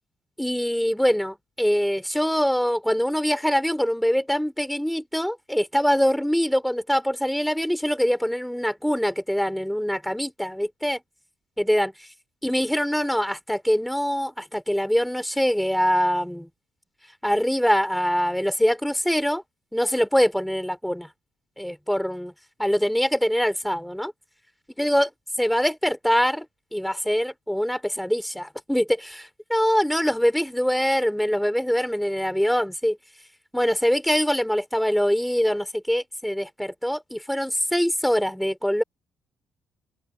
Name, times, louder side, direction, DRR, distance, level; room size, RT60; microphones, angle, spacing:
voice 1, 0.4-11.0 11.6-11.9 12.4-16.5 17.2-19.4 19.7-21.1 21.6-22.3 22.6-24.1 24.8-25.1 25.4-26.5 26.7-33.0 33.5-38.8, equal, ahead, 5.2 m, -23 dB
open air
cardioid pair, 90°, 0 cm